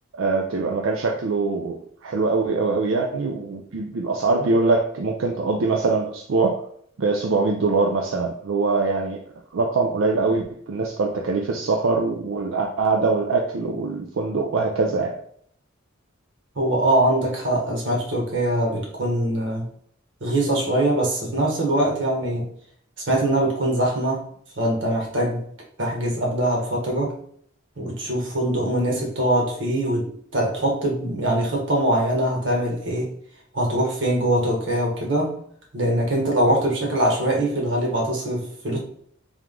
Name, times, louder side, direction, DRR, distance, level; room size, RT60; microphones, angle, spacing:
voice 1, 0.1-6.6 7.0-9.2 9.5-15.2, right 3 dB, 90° right, 1 dB, 0.5 m, -23 dB
voice 2, 16.5-19.7 20.2-22.5 23.1-24.2 24.5-25.5 25.8-27.1 27.8-33.2 33.5-35.4 35.7-38.8, right 1 dB, 65° right, -1 dB, 1.4 m, -23 dB
3.5 x 3.0 x 3.7 m, 0.63 s
head